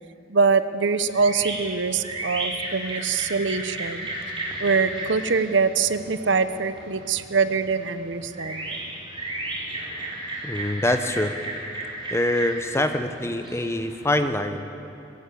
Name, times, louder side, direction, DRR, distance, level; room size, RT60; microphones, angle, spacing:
voice 1, 0.3-4.1 4.6-8.7, right 5 dB, 70° right, 12 dB, 0.8 m, -23 dB
sound 1, 1.1-14.3, right 2 dB, 25° right, 4.2 m, -34 dB
voice 2, 10.4-11.3 12.1-14.7, left 1 dB, 15° left, 8 dB, 0.9 m, -24 dB
21.0 x 15.0 x 8.5 m, 2.8 s
head